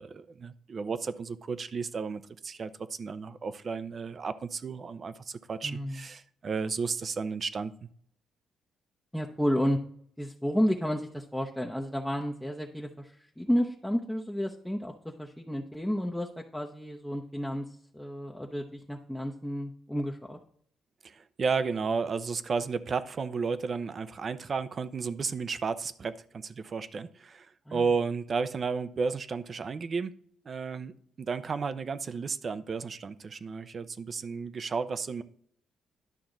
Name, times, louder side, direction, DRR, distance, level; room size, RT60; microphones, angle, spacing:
voice 1, 0.0-7.9 21.0-30.1 30.5-35.2, right 5 dB, 45° right, 13 dB, 0.6 m, -33 dB
voice 2, 5.6-6.0 9.1-9.8 10.2-17.6 17.9-20.4 27.7-27.8, equal, 5° left, 0 dB, 0.8 m, -31 dB
11.5 x 5.9 x 3.9 m, 0.64 s
cardioid pair, 90°, 0 cm